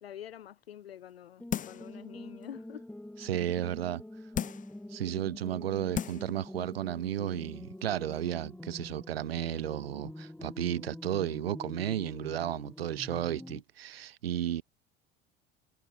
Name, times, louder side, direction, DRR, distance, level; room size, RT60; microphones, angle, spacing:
voice 1, 0.0-2.8, left 10 dB, 80° left, 0.6 m, -47 dB
sound 1, 1.4-13.6, left 1 dB, 5° left, 3.8 m, -46 dB
sound 2, 1.5-1.9 2.4-2.5 4.3-4.8 5.5-5.6 5.9-6.4 6.7-6.8, left 9 dB, 25° left, 0.7 m, -35 dB
voice 2, 3.2-4.0 4.9-14.6, right 11 dB, 75° right, 0.9 m, -33 dB
figure-of-eight pair, 65°, 30 cm